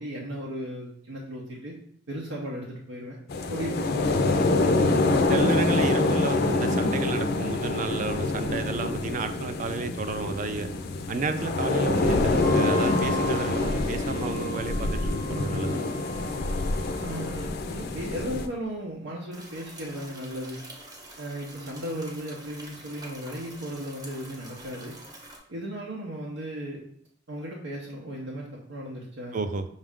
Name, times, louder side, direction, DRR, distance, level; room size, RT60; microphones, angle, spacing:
voice 1, 0.0-1.8 2.1-3.2 3.5-5.2 17.0-20.6 21.2-25.0 25.5-26.8 27.3-29.4, equal, 90° right, -3 dB, 0.7 m, -36 dB
sound 1, 3.3-18.5, left 2 dB, 55° left, 0.4 m, -26 dB
voice 2, 5.3-10.7 11.1-15.8 29.3-29.7, right 4 dB, 40° right, 9 dB, 0.3 m, -31 dB
Wind instrument woodwind instrument, 12.4-17.4, right 1 dB, 70° right, 0.9 m, -40 dB
sound 2, 19.3-25.4, right 1 dB, 20° right, 0.7 m, -46 dB
5.2 x 2.4 x 3.5 m, 0.66 s
head